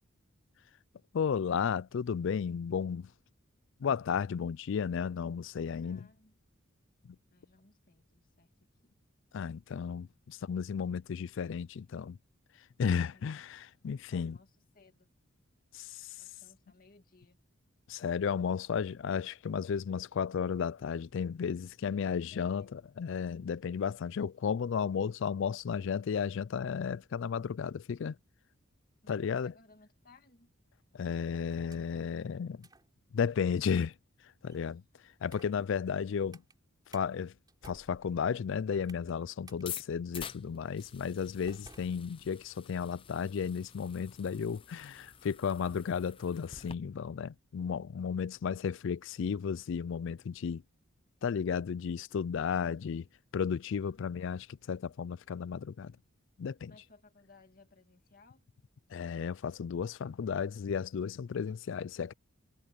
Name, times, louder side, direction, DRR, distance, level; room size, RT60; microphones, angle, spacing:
voice 1, 1.1-3.1 3.8-6.1 7.0-7.2 9.3-12.2 12.8-14.4 15.7-16.2 17.9-28.2 29.1-29.5 30.9-32.7 33.1-33.9 34.4-34.8 35.2-36.4 36.9-37.3 37.6-50.6 51.2-53.1 53.3-56.0 56.4-56.7 58.9-62.1, left 6 dB, 65° left, 0.4 m, -33 dB
voice 2, 5.8-6.4 7.3-8.5 8.8-9.0 13.1-13.4 14.0-15.1 16.2-17.4 21.8-22.9 29.0-30.5 53.8-54.0 56.7-58.5 61.4-61.6, left 3 dB, 45° left, 2.3 m, -61 dB
sound 1, 31.5-32.1 32.6-32.9 33.6-33.9 34.5-34.8 35.3-35.6 36.3-36.5 36.9-37.1 37.5-39.2 39.5-39.6 40.1-40.3 40.8-40.9 41.5-42.5, right 3 dB, 20° right, 3.7 m, -57 dB
sound 2, 39.7-46.7, left 8 dB, 25° left, 0.7 m, -48 dB
head